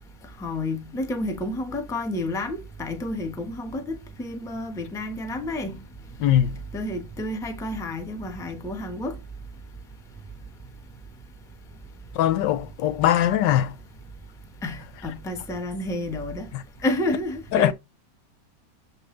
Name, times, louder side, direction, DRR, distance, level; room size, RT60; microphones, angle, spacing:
voice 1, 0.4-5.8 6.7-9.1 14.6-16.4 16.8-17.7, left 1 dB, ahead, 0.8 m, -30 dB
voice 2, 6.2-6.5 12.1-13.7 17.5-17.7, left 11 dB, 90° left, 1.3 m, -21 dB
7.7 x 3.9 x 3.7 m
omnidirectional pair, 1.9 m